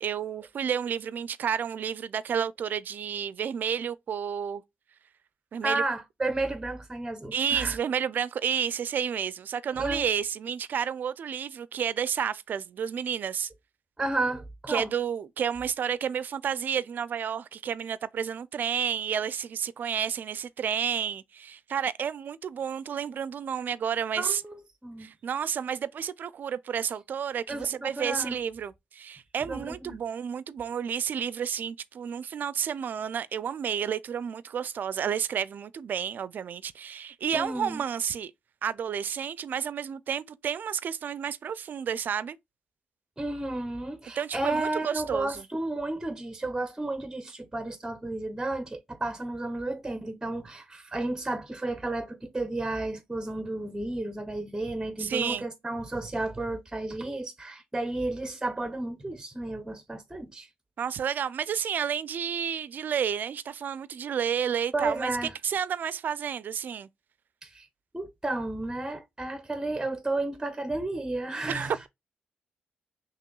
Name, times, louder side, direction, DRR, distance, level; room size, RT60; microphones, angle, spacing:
voice 1, 0.0-4.6 5.5-5.8 7.3-13.5 14.7-24.4 25.0-38.3 38.6-42.4 44.2-45.4 55.0-55.4 60.8-65.1 65.4-66.9 71.5-71.9, right 8 dB, 60° right, 0.4 m, -31 dB
voice 2, 5.6-7.8 9.7-10.1 14.0-14.9 24.2-24.6 24.8-25.1 27.5-28.4 29.5-30.0 37.3-37.8 43.2-60.5 64.7-65.3 67.4-67.7 67.9-71.8, right 2 dB, 15° right, 0.7 m, -32 dB
5.8 x 2.9 x 2.3 m
cardioid pair, 65°, 3 cm